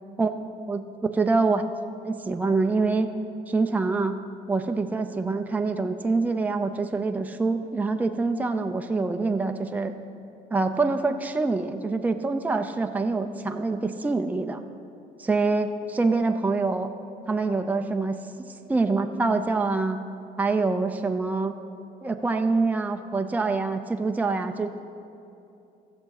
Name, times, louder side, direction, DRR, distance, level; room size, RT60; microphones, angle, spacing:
voice 1, 0.7-1.7 2.0-3.1 3.5-4.2 4.5-9.9 10.5-14.6 15.2-16.9 17.3-18.2 18.7-20.0 20.4-21.6 22.0-24.8, right 3 dB, 10° right, 6 dB, 0.5 m, -25 dB
14.5 x 7.1 x 5.8 m, 2.8 s
cardioid pair, 110°, 17 cm